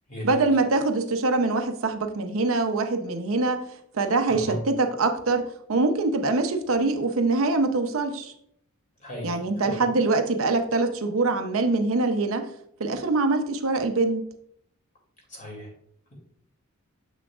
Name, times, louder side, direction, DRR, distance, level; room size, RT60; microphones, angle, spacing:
voice 1, 0.2-3.6 3.9-8.3 9.2-12.5 12.8-14.2, right 3 dB, 75° right, 6 dB, 0.7 m, -24 dB
voice 2, 9.0-9.4 9.6-9.8 15.3-15.7, equal, 35° left, -1 dB, 2.6 m, -36 dB
7.0 x 6.1 x 2.4 m, 0.69 s
head